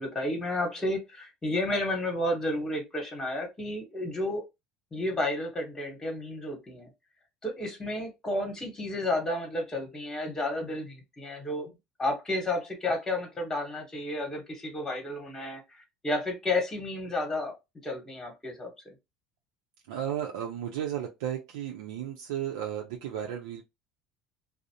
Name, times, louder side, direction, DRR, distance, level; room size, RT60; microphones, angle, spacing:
voice 1, 0.0-4.4 4.9-6.9 7.4-11.7 12.0-17.6 17.8-18.9, left 1 dB, 20° left, 1.2 m, -32 dB
voice 2, 19.9-23.6, right 10 dB, 85° right, 0.5 m, -34 dB
2.5 x 2.0 x 2.8 m
supercardioid pair, 100°, 2 cm